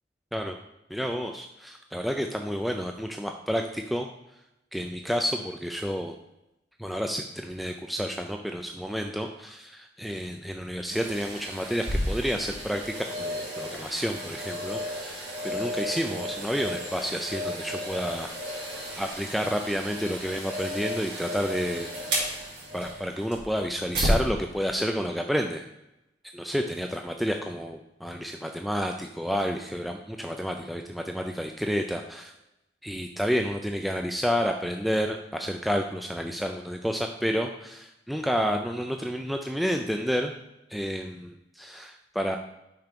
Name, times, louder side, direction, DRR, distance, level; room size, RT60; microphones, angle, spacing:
voice 1, 0.9-4.1 4.7-6.1 6.8-21.9 22.2-22.4 22.7-25.6 26.3-32.3 32.8-40.3 40.7-42.4, equal, ahead, 3 dB, 0.3 m, -30 dB
sound 1, 10.9-24.2 24.7-24.8, equal, 70° right, 2.4 m, -33 dB
5.9 x 4.3 x 5.2 m, 0.90 s
head